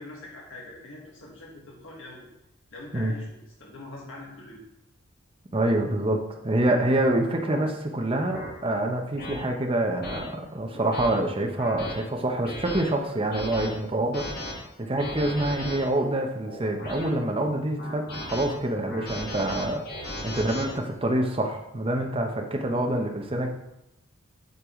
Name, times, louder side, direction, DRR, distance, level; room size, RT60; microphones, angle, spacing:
voice 1, 0.0-2.3 2.7-4.6 20.0-20.3, left 2 dB, 70° left, -2 dB, 1.5 m, -44 dB
voice 2, 5.5-6.2 6.4-23.5, right 1 dB, 25° right, 3 dB, 0.8 m, -26 dB
sound 1, 7.4-7.6 8.3-8.5 9.2-9.4 10.0-10.2 10.7-11.1 11.6-11.9 12.4-12.8 13.3-13.7 14.1-14.5 15.0-15.8 16.4-17.1 17.8-18.5 18.9-20.7, left 1 dB, 50° left, 1.6 m, -36 dB
8.2 x 4.7 x 3.7 m, 0.86 s
head